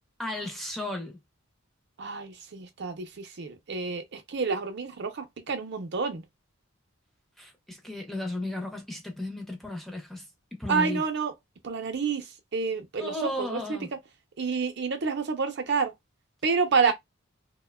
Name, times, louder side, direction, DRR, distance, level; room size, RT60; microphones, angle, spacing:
voice 1, 0.2-1.2 7.4-10.2 10.5-11.0 13.0-13.9 16.8-16.9, left 1 dB, ahead, 0.6 m, -34 dB
voice 2, 2.0-6.2 10.7-11.3 11.6-12.2 12.5-13.1 13.4-13.6 14.4-15.9 16.4-16.9, right 5 dB, 55° right, 0.6 m, -28 dB
2.8 x 2.1 x 2.2 m
head